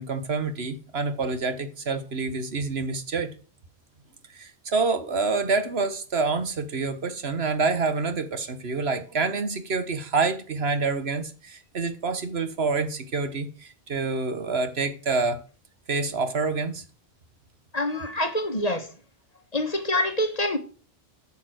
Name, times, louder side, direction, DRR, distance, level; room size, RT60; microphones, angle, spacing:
voice 1, 0.0-3.3 4.3-15.4 15.9-16.8, right 4 dB, 70° right, 1.6 m, -27 dB
voice 2, 17.7-18.9 19.5-20.6, left 1 dB, 35° left, 1.5 m, -26 dB
9.1 x 7.1 x 7.9 m
omnidirectional pair, 1.1 m